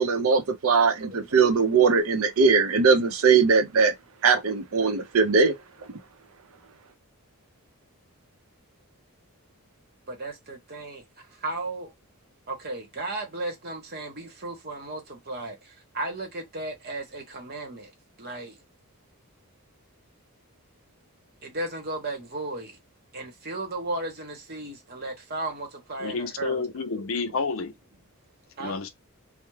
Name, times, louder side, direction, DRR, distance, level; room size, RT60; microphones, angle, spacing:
voice 1, 0.0-3.9 4.2-5.5, right 5 dB, 70° right, 0.6 m, -20 dB
voice 2, 10.1-11.9 12.5-17.9 18.2-18.6 21.4-22.8 23.1-26.6 28.6-28.8, right 2 dB, 45° right, 0.9 m, -35 dB
voice 3, 26.0-27.7 28.6-28.9, left 4 dB, 60° left, 0.5 m, -30 dB
2.3 x 2.0 x 3.1 m
head